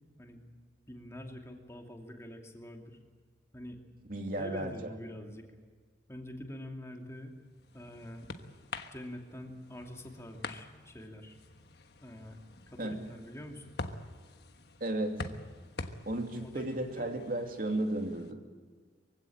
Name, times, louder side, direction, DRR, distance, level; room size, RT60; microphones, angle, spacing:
voice 1, 0.9-3.0 3.5-3.8 4.4-5.5 6.1-7.3 7.7-8.3 8.9-11.4 12.0-12.4 12.7-13.8 16.4-17.1, left 1 dB, 15° left, 2 dB, 2.7 m, -45 dB
voice 2, 4.1-4.9 12.8-13.0 14.8-15.2 16.1-18.4, right 1 dB, 50° right, 4 dB, 2.6 m, -34 dB
sound 1, 7.2-18.3, left 3 dB, 65° left, 1.3 m, -46 dB
24.0 x 16.0 x 8.8 m, 1.5 s
head